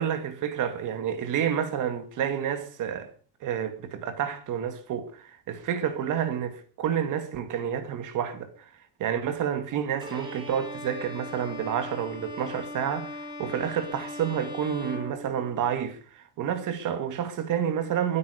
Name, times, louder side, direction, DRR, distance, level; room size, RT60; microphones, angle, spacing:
voice 1, 0.0-3.1 3.4-8.7 9.0-18.2, right 9 dB, 50° right, 2.2 m, -29 dB
Bowed string instrument, 10.0-15.9, left 2 dB, 10° right, 4.7 m, -40 dB
23.0 x 9.5 x 5.1 m
cardioid pair, 180°, 38 cm